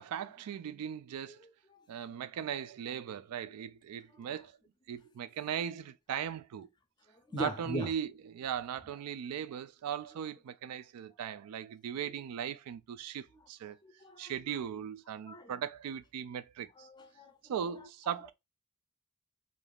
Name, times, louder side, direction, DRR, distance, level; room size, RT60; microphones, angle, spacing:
voice 1, 0.0-1.5 1.9-4.5 4.9-6.7 7.4-13.8 14.2-16.9 17.4-18.3, right 8 dB, 85° right, 0.3 m, -38 dB
voice 2, 1.4-1.8 4.2-4.3 7.1-7.9 12.0-12.1 13.8-14.6 15.3-15.6 16.8-17.4, equal, 20° left, 0.4 m, -41 dB
2.5 x 2.3 x 3.3 m
head